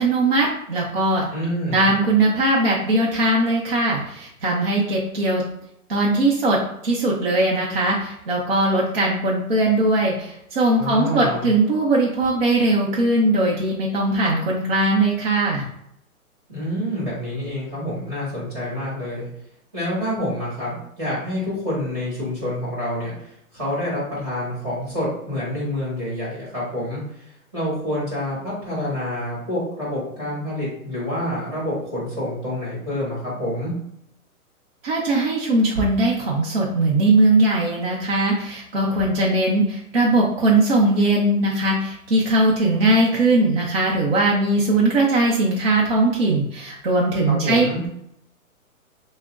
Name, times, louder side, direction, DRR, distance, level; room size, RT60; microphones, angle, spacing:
voice 1, 0.0-1.3 1.7-5.4 5.9-15.7 34.8-47.9, right 2 dB, 45° right, -4 dB, 0.7 m, -20 dB
voice 2, 1.3-1.9 10.8-11.5 16.5-19.3 19.7-27.0 27.5-33.7 47.3-47.8, left 1 dB, 15° right, -7 dB, 1.4 m, -27 dB
5.8 x 2.1 x 2.4 m, 0.77 s
hypercardioid pair, 175°, 44 cm